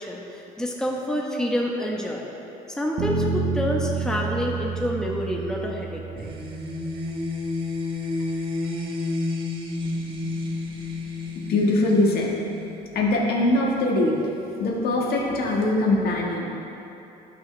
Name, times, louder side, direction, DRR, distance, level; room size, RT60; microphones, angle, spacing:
voice 1, 0.0-2.3 2.7-6.3, left 1 dB, 5° left, -1 dB, 1.1 m, -28 dB
sound 1, 3.0-7.1, right 5 dB, 75° right, 1.0 m, -29 dB
sound 2, 6.2-12.8, left 2 dB, 30° right, 1.5 m, -30 dB
voice 2, 11.5-12.3 12.9-14.1 14.6-16.4, left 2 dB, 65° left, -2 dB, 1.8 m, -22 dB
17.5 x 6.0 x 3.4 m, 3.0 s
cardioid pair, 110°, 17 cm